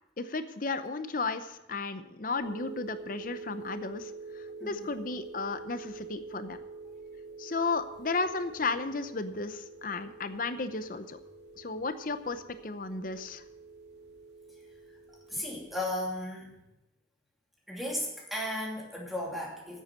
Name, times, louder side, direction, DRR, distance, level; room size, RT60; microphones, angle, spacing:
voice 1, 0.2-4.1 4.6-6.6 7.4-11.2 11.6-13.4, left 3 dB, 50° left, 11 dB, 0.7 m, -34 dB
sound 1, 2.4-15.7, right 4 dB, 65° right, 2.5 m, -46 dB
voice 2, 4.6-5.0 15.3-16.6 17.7-19.8, left 1 dB, ahead, -3 dB, 2.6 m, -35 dB
9.6 x 8.3 x 8.0 m, 0.91 s
head